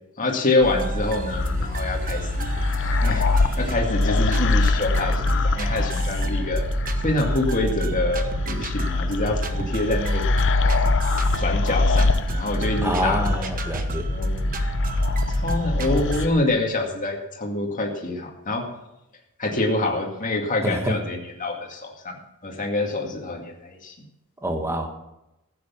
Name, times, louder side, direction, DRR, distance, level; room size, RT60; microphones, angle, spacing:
voice 1, 0.2-2.5 3.0-6.7 7.0-10.2 11.4-13.5 14.1-14.5 14.9-15.0 15.3-18.6 19.4-24.0, left 2 dB, 35° left, 0 dB, 2.2 m, -26 dB
sound 1, 0.6-16.3, right 1 dB, 40° right, 1.1 m, -29 dB
sound 2, 1.3-16.3, left 3 dB, 60° left, 0.9 m, -24 dB
voice 2, 12.8-14.0 20.6-21.0 24.4-24.9, right 1 dB, 10° right, 4 dB, 1.6 m, -26 dB
15.0 x 8.5 x 7.0 m, 0.91 s
head